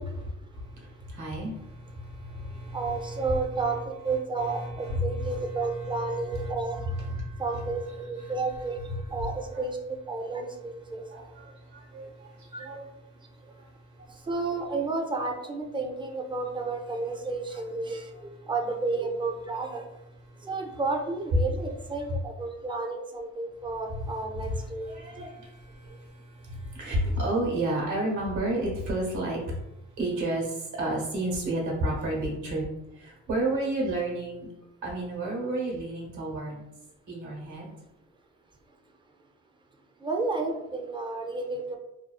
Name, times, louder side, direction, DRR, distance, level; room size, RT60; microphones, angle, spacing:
voice 1, 0.2-9.7 10.9-14.3 14.7-14.8 17.5-18.5 19.7-19.8 20.2-20.8 21.3-21.4 22.1-22.2 23.6-32.7 32.9-34.5 34.8-36.6 37.1-37.7, right 1 dB, 75° right, -2 dB, 1.1 m, -33 dB
voice 2, 2.7-6.8 7.4-8.8 9.1-11.0 12.5-12.7 14.3-18.0 18.5-19.8 20.5-24.9 40.0-41.8, right 3 dB, 15° right, 2 dB, 0.4 m, -31 dB
2.5 x 2.3 x 2.3 m, 0.90 s
cardioid pair, 90°, 30 cm